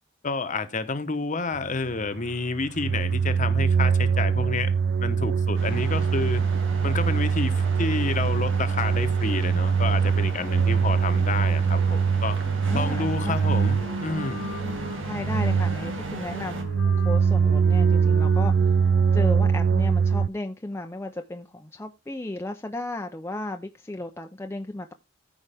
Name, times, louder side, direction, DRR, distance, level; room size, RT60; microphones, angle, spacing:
voice 1, 0.2-4.7 5.0-6.4 6.8-12.4 12.7-14.4, left 3 dB, 40° left, 0.9 m, -29 dB
sound 1, 1.5-20.3, right 6 dB, 60° right, 0.4 m, -23 dB
sound 2, 5.5-16.6, right 2 dB, 90° right, 2.0 m, -37 dB
Wind instrument woodwind instrument, 12.4-19.8, left 3 dB, 70° left, 1.1 m, -43 dB
voice 2, 12.7-13.4 15.0-18.8 19.1-24.9, left 2 dB, 15° left, 0.5 m, -34 dB
14.0 x 4.7 x 3.4 m
head